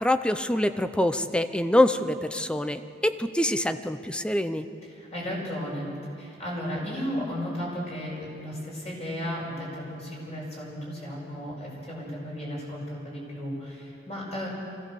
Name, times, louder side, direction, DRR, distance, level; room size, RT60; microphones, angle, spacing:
voice 1, 0.0-4.6, left 1 dB, 5° left, 10 dB, 0.6 m, -25 dB
voice 2, 4.9-5.9 6.2-14.5, equal, 35° left, -4 dB, 6.5 m, -34 dB
24.0 x 16.5 x 6.9 m, 2.6 s
head